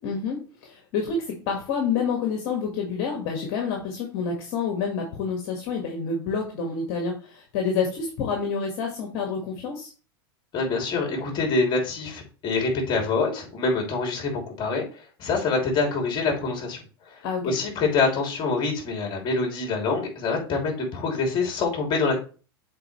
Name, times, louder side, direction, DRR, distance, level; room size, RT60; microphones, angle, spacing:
voice 1, 0.0-9.9 17.2-17.5, left 5 dB, 60° left, 1 dB, 1.6 m, -28 dB
voice 2, 10.5-14.8 15.2-16.8 17.1-17.2 17.4-22.2, left 4 dB, 40° left, 1 dB, 2.8 m, -25 dB
7.6 x 4.1 x 3.1 m, 0.37 s
hypercardioid pair, 100°, 13 cm